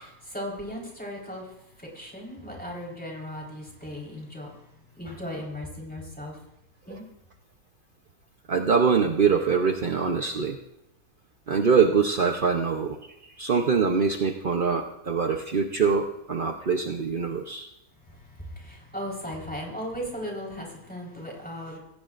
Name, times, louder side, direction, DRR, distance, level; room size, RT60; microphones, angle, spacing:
voice 1, 0.0-6.4 6.9-7.0 18.0-21.8, equal, 5° left, -2 dB, 4.1 m, -37 dB
voice 2, 8.5-10.6 11.5-13.0 13.2-17.7, right 5 dB, 50° right, 4 dB, 0.6 m, -24 dB
25.0 x 16.0 x 2.5 m, 0.86 s
omnidirectional pair, 1.9 m